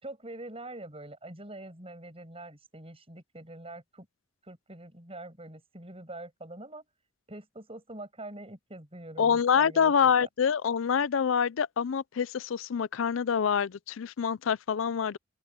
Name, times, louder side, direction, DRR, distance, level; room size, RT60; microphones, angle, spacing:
voice 1, 0.0-4.1 4.4-6.9 7.3-10.3, right 2 dB, 30° right, 7.9 m, -44 dB
voice 2, 9.2-15.2, left 7 dB, 85° left, 0.5 m, -26 dB
open air
head